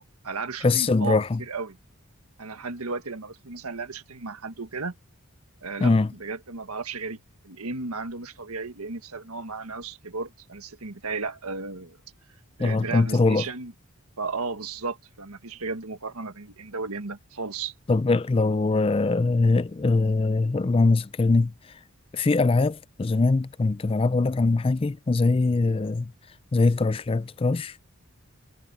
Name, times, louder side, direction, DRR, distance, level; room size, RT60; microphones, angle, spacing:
voice 1, 0.0-1.8 2.4-4.9 5.6-5.9 6.2-7.2 7.4-12.0 12.6-13.7 14.2-17.7, right 4 dB, 80° right, 1.6 m, -34 dB
voice 2, 0.6-1.4 5.8-6.1 12.6-13.4 17.9-21.5 22.1-26.1 26.5-27.8, left 3 dB, 25° left, 0.3 m, -22 dB
head